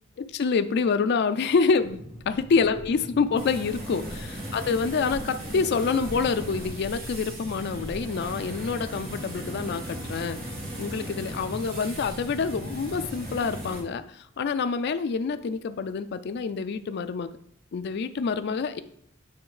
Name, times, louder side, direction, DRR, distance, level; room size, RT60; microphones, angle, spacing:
voice 1, 0.2-10.4 10.8-17.3 17.7-18.8, left 5 dB, 55° left, 10 dB, 0.4 m, -27 dB
sound 1, 1.8-13.4, equal, 20° left, 2.0 m, -42 dB
sound 2, 3.4-13.8, right 1 dB, 50° right, 2.2 m, -38 dB
8.6 x 3.3 x 4.8 m, 0.69 s
head